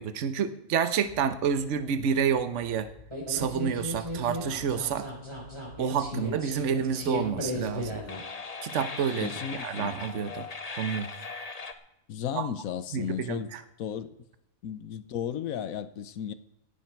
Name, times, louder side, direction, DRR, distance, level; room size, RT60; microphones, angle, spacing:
voice 1, 0.0-2.9 3.3-5.1 5.8-8.0 8.6-10.5 10.8-11.1 12.3-12.5 12.9-13.6, right 7 dB, 60° right, 1.2 m, -29 dB
sound 1, 1.0-11.7, left 4 dB, 30° left, 1.0 m, -43 dB
sound 2, 3.1-8.2, equal, 20° right, 3.6 m, -36 dB
voice 2, 6.1-6.4 9.2-10.0 12.1-13.5 13.8-14.1 14.6-16.3, left 9 dB, 75° left, 1.3 m, -34 dB
18.0 x 11.0 x 4.6 m
omnidirectional pair, 1.5 m